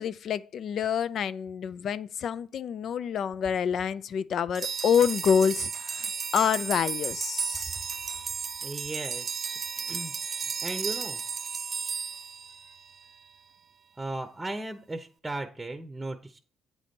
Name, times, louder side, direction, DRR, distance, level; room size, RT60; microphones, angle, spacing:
voice 1, 0.0-7.8, left 7 dB, 65° left, 0.4 m, -27 dB
sound 1, 4.5-13.1, right 6 dB, 45° right, 0.3 m, -34 dB
voice 2, 8.6-9.6 9.9-10.1 10.6-11.2 14.0-16.4, right 2 dB, 15° right, 0.8 m, -36 dB
8.4 x 4.1 x 5.2 m
cardioid pair, 90°, 0 cm